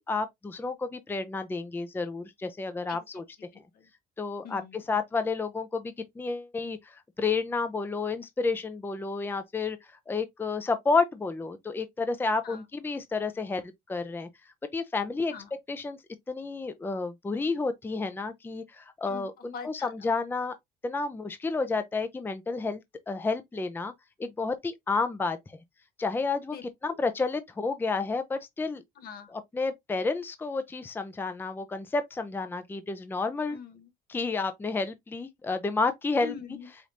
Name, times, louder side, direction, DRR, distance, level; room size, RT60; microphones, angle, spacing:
voice 1, 0.0-3.2 4.2-9.8 10.1-13.6 13.9-14.3 14.7-15.3 15.7-16.0 16.3-20.6 20.8-22.8 23.1-23.9 24.2-25.4 26.0-28.8 29.3-33.6 34.1-36.3, left 4 dB, 10° left, 0.5 m, -30 dB
voice 2, 3.5-3.9 4.4-4.8 12.4-12.6 15.3-15.5 19.1-19.3 19.5-19.9 26.5-26.6 26.9-27.0 29.0-29.3 33.5-33.9 36.2-36.7, left 6 dB, 65° left, 1.0 m, -43 dB
5.0 x 3.0 x 2.6 m
cardioid pair, 110°, 17 cm